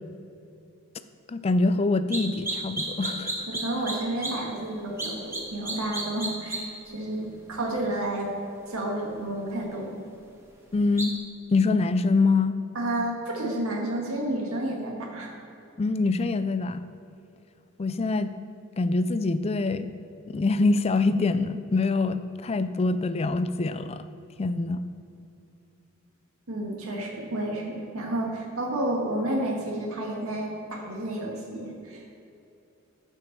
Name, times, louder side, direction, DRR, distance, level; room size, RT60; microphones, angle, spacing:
voice 1, 1.3-3.5 10.7-11.1 11.5-12.6 15.8-16.9 17.8-18.3 18.8-19.9 20.3-24.0 24.4-24.8, left 3 dB, 30° left, 12 dB, 0.4 m, -24 dB
sound 1, 2.1-2.2 2.5-4.0 4.2-4.3 5.0-5.4 5.7-6.6 11.0-11.1, right 2 dB, 10° right, 1.2 m, -30 dB
voice 2, 3.5-8.3 8.7-9.9 12.8-15.3 26.5-32.2, right 1 dB, 80° right, -1 dB, 1.9 m, -31 dB
9.2 x 5.6 x 6.8 m, 2.8 s
head